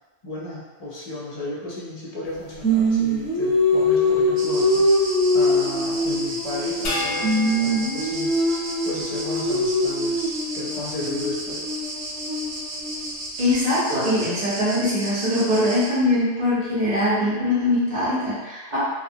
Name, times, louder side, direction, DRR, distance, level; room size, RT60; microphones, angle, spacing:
voice 1, 0.2-4.9 5.3-8.4 8.8-11.6, left 2 dB, 45° left, -6 dB, 0.5 m, -34 dB
Singing, 2.6-6.9 7.2-13.2, left 1 dB, 5° left, 1.0 m, -23 dB
sound 1, 4.4-15.9, right 1 dB, 90° right, 1.0 m, -34 dB
sound 2, 6.8-9.4, left 2 dB, 70° left, 0.8 m, -32 dB
voice 2, 13.4-18.8, left 1 dB, 45° right, -9 dB, 0.8 m, -22 dB
2.8 x 2.3 x 2.7 m, 1.2 s
omnidirectional pair, 1.2 m